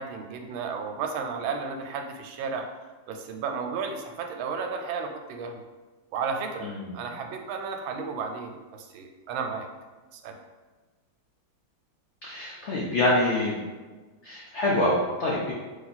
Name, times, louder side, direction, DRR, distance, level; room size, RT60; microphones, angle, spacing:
voice 1, 0.0-2.6 3.1-5.6 6.1-9.7 10.1-10.4, right 5 dB, 90° right, 4 dB, 1.4 m, -33 dB
voice 2, 6.6-7.0 12.2-13.6 14.2-15.5, left 1 dB, 80° left, -5 dB, 0.6 m, -26 dB
3.3 x 3.0 x 4.0 m, 1.3 s
omnidirectional pair, 2.1 m